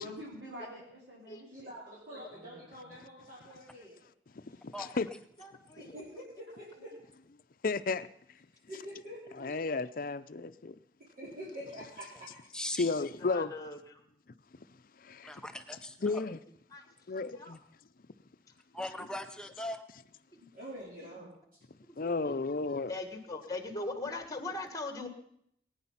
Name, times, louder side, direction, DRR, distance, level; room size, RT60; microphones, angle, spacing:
voice 1, 0.0-1.7 2.1-2.9 21.1-21.2, equal, 85° right, 4.6 m, -47 dB
voice 2, 1.5-4.0 5.8-6.9 8.7-9.5 11.2-12.1 20.5-21.3, equal, 50° right, 4.2 m, -46 dB
voice 3, 4.4-5.1 7.6-8.1 9.4-10.8 12.8-13.5 15.0-15.3 16.0-16.4 17.1-17.6 22.0-22.9, left 3 dB, 50° left, 0.6 m, -33 dB
voice 4, 5.4-6.0 9.4-9.5 13.0-14.0 16.7-16.9 17.3-17.6 20.3-20.4 21.8-22.4 22.9-25.1, left 2 dB, 20° left, 1.7 m, -41 dB
voice 5, 12.5-12.9 15.2-16.2 18.7-19.9, left 1 dB, 5° left, 0.6 m, -40 dB
20.0 x 9.6 x 5.7 m
head